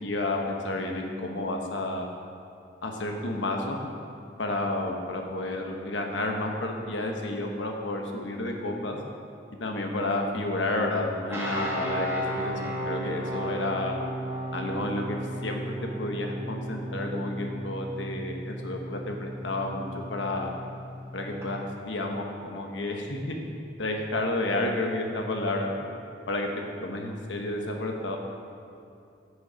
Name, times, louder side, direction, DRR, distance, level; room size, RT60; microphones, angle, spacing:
voice 1, 0.0-2.1 2.8-3.8 4.4-9.0 9.6-14.0 14.5-15.2 15.4-20.5 21.1-23.3 23.8-25.7 26.3-26.5 26.8-28.2, left 2 dB, 85° left, 2 dB, 1.2 m, -31 dB
sound 1, 11.3-21.5, right 1 dB, 15° right, 1.2 m, -35 dB
9.9 x 6.4 x 5.1 m, 2.5 s
head